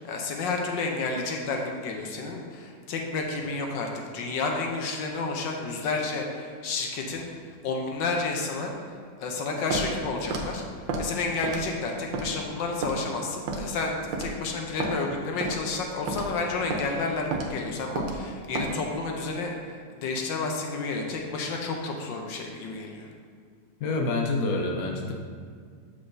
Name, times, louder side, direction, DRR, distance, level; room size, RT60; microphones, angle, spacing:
voice 1, 0.0-7.3 7.6-8.7 9.2-10.6 11.0-23.1, left 3 dB, 80° left, 2 dB, 1.4 m, -31 dB
Walk footsteps, 9.7-9.9 10.3-10.5 10.9-11.1 11.4-11.7 12.1-12.3 12.8-13.0 13.5-13.7 14.1-14.3 14.8-14.9 15.4-15.6 16.1-16.3 16.7-16.9 17.3-17.5 18.0-18.2 18.5-18.7, right 3 dB, 90° right, 1.5 m, -30 dB
voice 2, 23.8-25.1, left 2 dB, 60° left, 1 dB, 1.1 m, -27 dB
7.9 x 6.4 x 2.6 m, 2.1 s
omnidirectional pair, 2.0 m